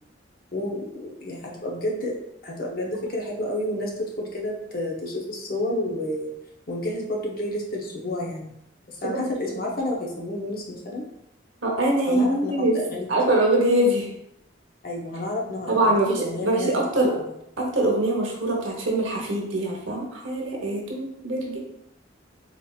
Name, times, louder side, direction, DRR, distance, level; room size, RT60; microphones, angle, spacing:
voice 1, 0.5-2.2 2.4-6.3 6.7-8.5 8.9-11.0 12.1-13.1 14.8-16.7 17.1-17.3, left 1 dB, 45° left, -2 dB, 0.7 m, -30 dB
voice 2, 11.6-12.8 13.1-14.1 15.7-17.1 17.6-21.6, right 1 dB, 80° right, -1 dB, 0.9 m, -23 dB
4.0 x 3.0 x 2.3 m, 0.78 s
head